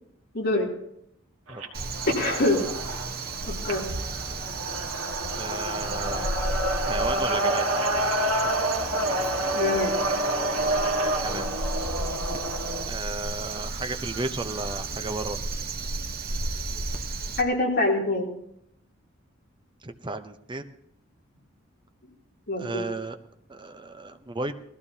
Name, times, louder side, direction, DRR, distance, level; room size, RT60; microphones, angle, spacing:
voice 1, 0.3-0.7 2.2-2.6 3.5-3.8 9.5-10.0 17.4-18.3 22.5-22.9, left 2 dB, 50° left, -2 dB, 3.2 m, -25 dB
sound 1, 1.5-12.9, right 1 dB, 85° right, 1.7 m, -28 dB
Crow, 1.7-17.4, right 3 dB, 50° right, 1.0 m, -33 dB
voice 2, 5.3-6.3 6.9-7.8 8.4-8.7 10.5-10.7 11.2-11.5 12.9-15.4 19.8-20.7 22.6-23.2 23.5-24.5, right 2 dB, 25° right, 8 dB, 0.8 m, -34 dB
20.0 x 14.5 x 2.8 m, 0.76 s
head